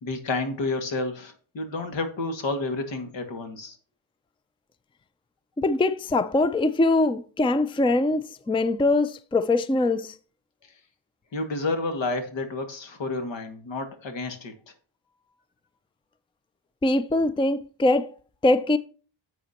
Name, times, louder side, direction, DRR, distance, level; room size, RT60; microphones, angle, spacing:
voice 1, 0.0-3.8 11.3-14.5, left 3 dB, 75° left, 2.0 m, -30 dB
voice 2, 5.6-10.2 16.8-18.1 18.4-18.8, left 2 dB, 10° left, 0.4 m, -22 dB
11.0 x 7.6 x 2.9 m
cardioid pair, 105°, 45 cm